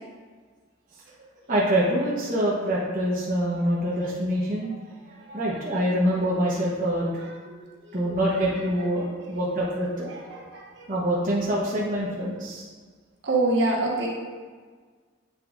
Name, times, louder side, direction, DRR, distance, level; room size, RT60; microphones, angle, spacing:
voice 1, 1.5-4.8 5.3-7.1 7.9-10.4 10.9-12.7, equal, 40° right, -6 dB, 1.0 m, -25 dB
voice 2, 10.1-10.9 13.2-14.1, right 2 dB, 60° right, -3 dB, 1.3 m, -26 dB
7.9 x 5.6 x 2.5 m, 1.5 s
head